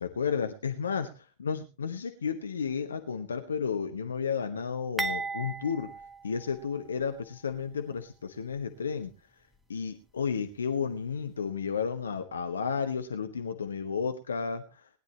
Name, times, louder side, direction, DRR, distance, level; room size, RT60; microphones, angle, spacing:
voice 1, 0.0-1.1 1.4-5.9 6.2-9.1 9.7-14.6, left 6 dB, 70° left, 7 dB, 1.0 m, -32 dB
sound 1, 5.0-7.1 7.5-7.7 8.5-8.7, right 3 dB, 5° right, 1.0 m, -36 dB
20.0 x 10.5 x 2.9 m, 0.32 s
figure-of-eight pair, 90°, 0 cm